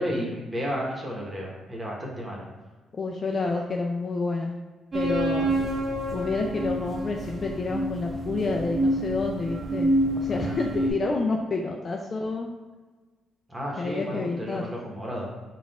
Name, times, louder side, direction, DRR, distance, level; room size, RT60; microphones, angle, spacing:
voice 1, 0.0-2.4 5.5-5.7 10.3-10.9 13.5-15.3, equal, 15° right, -2 dB, 1.0 m, -33 dB
voice 2, 2.9-4.6 4.9-5.5 6.1-9.9 10.2-12.5 13.8-14.6, left 3 dB, 40° left, 1 dB, 0.4 m, -29 dB
sound 1, 4.9-10.9, right 1 dB, 35° right, 0.9 m, -27 dB
3.9 x 2.4 x 4.0 m, 1.3 s
cardioid pair, 90°, 0 cm